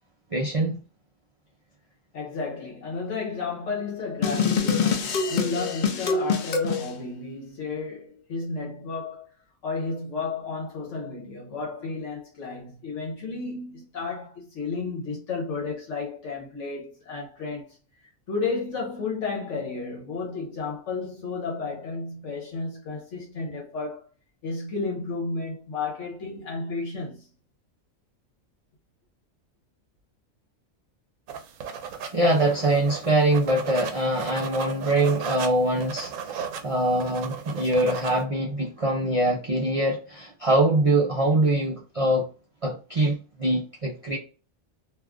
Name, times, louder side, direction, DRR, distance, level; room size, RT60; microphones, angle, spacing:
voice 1, 0.3-0.8 32.1-42.3 42.6-44.2, right 1 dB, 50° right, 0.4 m, -23 dB
voice 2, 2.1-9.3 9.6-17.8 18.3-24.0 24.4-27.3, left 4 dB, 65° left, 1.1 m, -32 dB
sound 1, 4.2-6.9, left 5 dB, 90° left, 0.4 m, -24 dB
sound 2, 31.3-38.2, right 7 dB, 75° right, 0.9 m, -36 dB
2.6 x 2.3 x 3.5 m
omnidirectional pair, 1.4 m